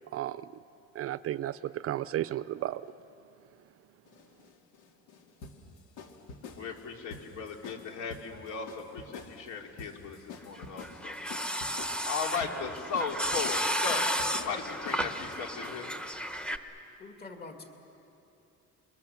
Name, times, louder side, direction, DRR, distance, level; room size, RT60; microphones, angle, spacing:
voice 1, 1.0-2.8, right 13 dB, 50° right, 16 dB, 0.5 m, -33 dB
sound 1, 4.1-16.1, left 4 dB, 85° left, 2.4 m, -47 dB
voice 2, 6.6-11.2 12.0-14.1 14.4-15.9, left 5 dB, 70° left, 2 dB, 3.2 m, -37 dB
sound 2, 10.6-16.6, equal, 5° left, 0.9 m, -33 dB
voice 3, 17.0-17.6, left 3 dB, 30° left, 3 dB, 2.5 m, -45 dB
29.0 x 22.5 x 7.1 m, 2.9 s
cardioid pair, 140°, 30 cm